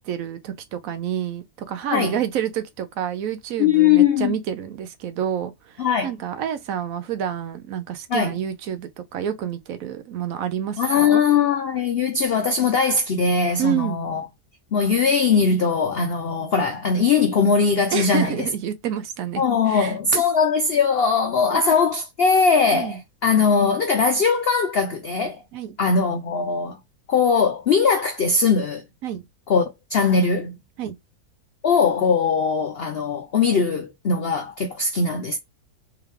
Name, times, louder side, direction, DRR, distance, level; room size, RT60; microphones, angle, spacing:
voice 1, 0.0-11.2 13.6-14.0 17.9-20.2 21.5-21.6 22.7-23.0 25.5-25.8 29.0-29.2 30.8-31.0, right 9 dB, 70° right, 0.9 m, -29 dB
voice 2, 3.6-4.3 5.8-6.1 8.1-8.3 10.8-14.2 14.7-18.5 19.4-25.4 25.8-26.8 27.1-28.8 29.5-30.6 31.6-35.4, left 5 dB, 70° left, 0.5 m, -20 dB
3.6 x 3.4 x 3.1 m
omnidirectional pair, 1.7 m